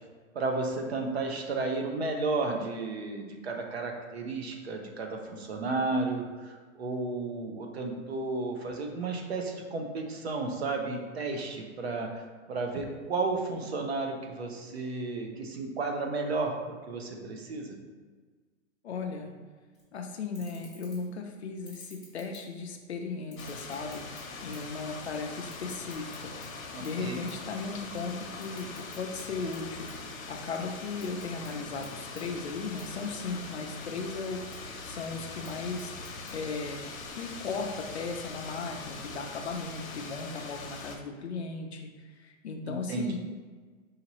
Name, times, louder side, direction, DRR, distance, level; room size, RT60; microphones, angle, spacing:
voice 1, 0.3-16.5 16.9-17.8 26.7-27.2 42.7-43.2, right 3 dB, 50° right, 3 dB, 0.6 m, -33 dB
voice 2, 18.8-19.3 19.9-26.3 26.8-29.9 30.3-34.4 34.8-35.9 36.3-36.8 37.1-43.2, left 4 dB, 55° left, 4 dB, 0.5 m, -36 dB
sound 1, 19.7-19.9 20.3-21.2 21.6-22.8 23.2-24.8 25.0-26.5 26.8-27.0 27.3-27.5 27.8-29.2 29.5-30.5 30.8-31.5 31.8-31.9 32.2-32.3 32.8-32.9 33.3-33.8 34.3-34.6 35.2-36.3, left 1 dB, ahead, 0.9 m, -54 dB
sound 2, 23.4-41.0, left 3 dB, 85° left, 0.8 m, -42 dB
4.9 x 2.8 x 2.9 m, 1.5 s
hypercardioid pair, 180°, 40 cm